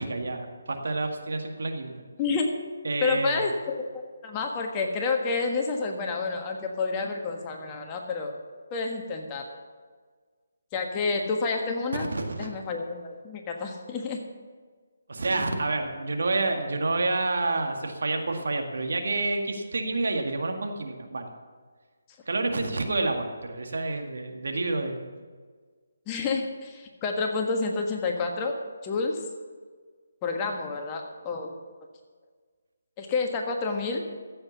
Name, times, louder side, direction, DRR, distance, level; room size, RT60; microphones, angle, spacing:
voice 1, 0.0-1.9 2.8-3.4 11.9-12.5 15.1-21.3 22.3-25.0, right 2 dB, 65° right, 3 dB, 1.9 m, -28 dB
voice 2, 3.0-8.3 8.7-9.6 10.7-12.1 12.4-14.2 26.1-28.5 28.8-29.2 30.2-31.5 33.0-34.0, left 4 dB, 20° left, 2 dB, 1.5 m, -29 dB
14.5 x 7.9 x 7.1 m, 1.6 s
figure-of-eight pair, 150°, 0 cm